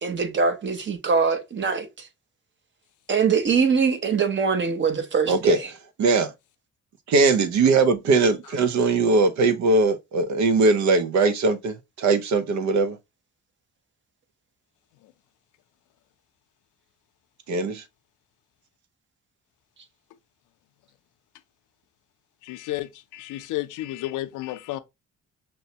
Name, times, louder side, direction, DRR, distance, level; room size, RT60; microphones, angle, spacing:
voice 1, 0.0-2.1 3.1-5.7, right 5 dB, 40° right, 0.9 m, -23 dB
voice 2, 5.3-5.6 6.0-6.3 7.1-13.0 17.5-17.8, right 3 dB, 65° right, 0.7 m, -20 dB
voice 3, 22.4-24.8, left 16 dB, 85° left, 0.5 m, -32 dB
5.4 x 2.2 x 2.8 m
cardioid pair, 90°, 30 cm